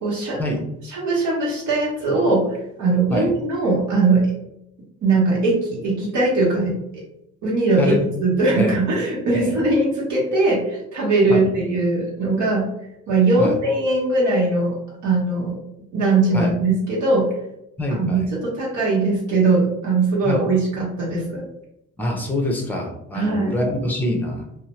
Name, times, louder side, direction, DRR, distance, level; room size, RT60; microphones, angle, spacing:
voice 1, 0.0-0.4 0.9-4.3 5.0-7.0 7.4-7.9 8.2-12.7 13.1-14.8 15.0-15.6 15.9-17.3 17.9-21.4 23.1-23.6, right 2 dB, 75° right, -5 dB, 1.0 m, -20 dB
voice 2, 17.8-18.2 20.2-20.4 22.0-24.4, left 1 dB, 5° left, 1 dB, 0.6 m, -24 dB
2.6 x 2.0 x 3.0 m, 0.82 s
cardioid pair, 90°, 30 cm